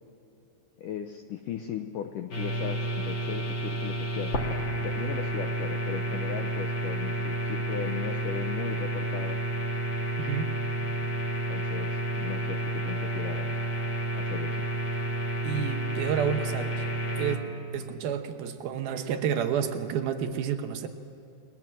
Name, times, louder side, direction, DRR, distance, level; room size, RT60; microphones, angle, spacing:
voice 1, 0.8-4.3 4.8-9.4 11.4-13.5 14.1-14.7, left 9 dB, 80° left, 7 dB, 1.9 m, -37 dB
sound 1, 2.3-17.4, right 1 dB, 35° left, 2.3 m, -30 dB
voice 2, 10.2-10.5 15.4-16.8 17.1-20.9, right 8 dB, 70° right, 7 dB, 2.7 m, -30 dB
29.5 x 21.5 x 7.6 m, 2.8 s
omnidirectional pair, 4.8 m